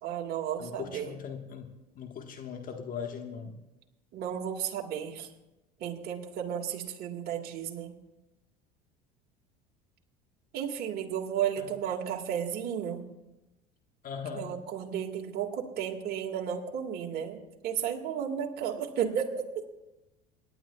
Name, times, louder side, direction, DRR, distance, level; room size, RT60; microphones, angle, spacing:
voice 1, 0.0-1.2 4.1-5.3 5.8-8.0 10.5-13.1 14.3-19.7, right 8 dB, 50° right, 1 dB, 1.9 m, -33 dB
voice 2, 0.6-1.7 1.9-3.6 11.6-11.7 14.0-14.5, left 6 dB, 45° left, 5 dB, 1.4 m, -39 dB
27.5 x 10.5 x 2.3 m, 0.98 s
hypercardioid pair, 75°, 20 cm